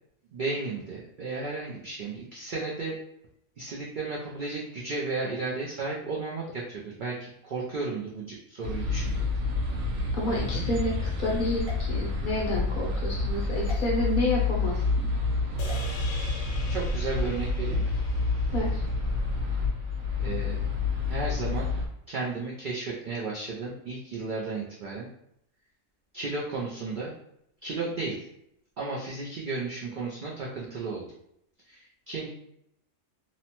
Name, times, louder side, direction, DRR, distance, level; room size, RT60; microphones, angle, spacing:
voice 1, 0.3-3.0 3.6-9.2 10.2-10.8 16.7-17.9 20.2-20.6 21.1-21.7 22.1-25.1 26.1-27.1 27.6-28.3 28.8-31.1 31.7-32.3, right 3 dB, 90° right, -4 dB, 0.4 m, -34 dB
sound 1, 8.6-21.9, left 3 dB, 70° right, 0.8 m, -28 dB
voice 2, 10.1-15.1 18.5-18.8, left 1 dB, 55° left, -3 dB, 0.6 m, -30 dB
sound 2, 11.6-12.6 13.7-13.8 15.6-15.9, left 4 dB, 30° right, 0.7 m, -45 dB
sound 3, 15.6-20.0, left 3 dB, 80° left, 1.0 m, -44 dB
2.8 x 2.0 x 2.8 m, 0.73 s
omnidirectional pair, 1.4 m